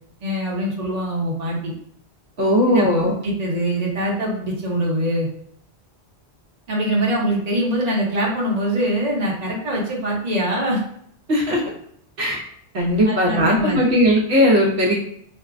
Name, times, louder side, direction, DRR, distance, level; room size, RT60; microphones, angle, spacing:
voice 1, 0.2-1.7 2.7-5.3 6.7-10.8 13.0-13.9, right 1 dB, 40° right, -3 dB, 0.9 m, -23 dB
voice 2, 2.4-3.1 11.3-11.6 12.2-12.4 12.7-14.9, equal, 70° right, -3 dB, 1.0 m, -18 dB
4.4 x 2.1 x 2.4 m, 0.67 s
omnidirectional pair, 1.2 m